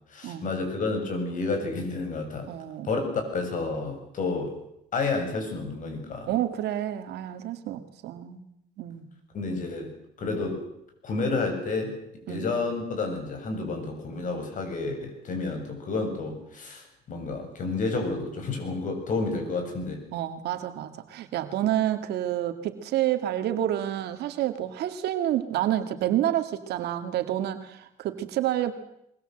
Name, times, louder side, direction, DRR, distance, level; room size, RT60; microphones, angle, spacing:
voice 1, 0.1-2.5 2.8-4.5 4.9-6.3 9.3-9.9 10.2-10.6 11.0-12.0 12.3-20.0, left 3 dB, 50° left, 5 dB, 7.9 m, -30 dB
voice 2, 2.5-2.9 6.3-8.4 8.8-9.1 12.3-12.5 20.1-28.7, right 12 dB, 75° right, 8 dB, 2.3 m, -29 dB
23.0 x 21.5 x 8.0 m, 0.77 s
cardioid pair, 110°, 17 cm